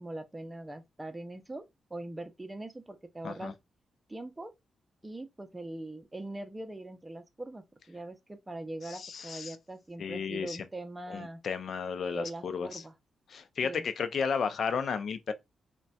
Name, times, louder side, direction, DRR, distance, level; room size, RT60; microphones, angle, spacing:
voice 1, 0.0-1.6 1.9-3.5 4.1-4.5 5.0-11.4 12.1-12.9 13.6-13.8, right 2 dB, 20° right, 0.5 m, -42 dB
voice 2, 8.9-9.6 10.0-10.6 11.1-12.8 13.3-15.3, left 6 dB, 65° left, 0.4 m, -33 dB
3.9 x 2.2 x 2.3 m
cardioid pair, 75°, 0 cm